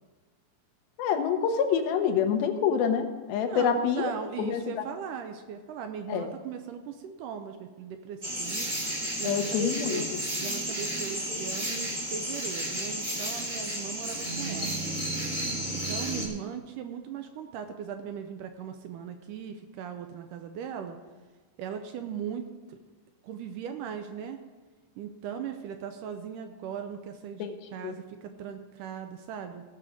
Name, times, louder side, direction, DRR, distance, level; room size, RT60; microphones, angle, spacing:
voice 1, 1.0-4.1 4.5-4.8 6.1-6.3 9.2-10.0 27.4-27.5 27.8-28.0, left 7 dB, 80° left, 6 dB, 2.8 m, -27 dB
voice 2, 3.4-8.7 9.2-10.1 10.4-14.8 15.5-21.0 21.6-22.8 23.2-24.4 25.0-29.6, right 7 dB, 80° right, 7 dB, 2.0 m, -39 dB
sound 1, 8.2-16.3, right 1 dB, 25° right, 1.2 m, -32 dB
16.5 x 6.6 x 5.0 m, 1.3 s
omnidirectional pair, 4.3 m